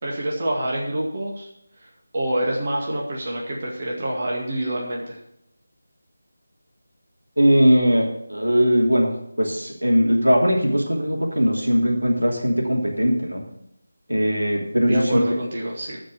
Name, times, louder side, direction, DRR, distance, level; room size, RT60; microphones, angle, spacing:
voice 1, 0.0-1.5 1.8-5.2 14.9-16.0, right 1 dB, 40° right, -2 dB, 2.0 m, -26 dB
voice 2, 7.4-9.1 9.4-13.4 14.1-15.4, equal, 85° right, -1 dB, 2.9 m, -20 dB
13.5 x 5.2 x 6.1 m, 0.77 s
figure-of-eight pair, 160°, 0 cm